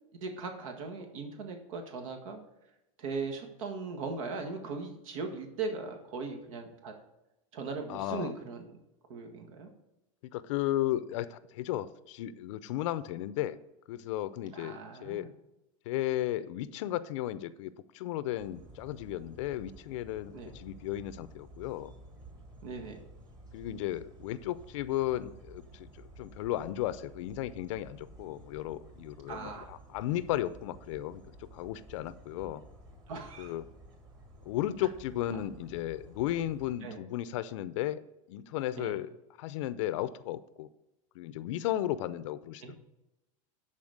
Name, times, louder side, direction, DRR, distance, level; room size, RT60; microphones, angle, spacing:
voice 1, 0.2-2.4 3.0-6.9 7.5-8.7 9.1-9.7 14.5-15.3 20.3-20.5 22.6-23.0 29.3-29.7 33.1-33.5 35.3-35.4 36.8-37.0 38.8-38.9 42.6-42.7, right 4 dB, 75° right, 3 dB, 1.7 m, -39 dB
voice 2, 7.9-8.3 10.3-13.6 13.9-15.3 15.9-21.9 23.5-25.9 26.2-31.2 31.5-32.6 33.4-33.7 34.5-38.0 38.3-39.1 39.4-40.7 41.2-42.7, left 13 dB, 65° left, 15 dB, 0.6 m, -34 dB
sound 1, 18.4-36.7, right 1 dB, 25° right, 1.6 m, -53 dB
11.0 x 4.2 x 6.5 m, 0.94 s
supercardioid pair, 155°, 17 cm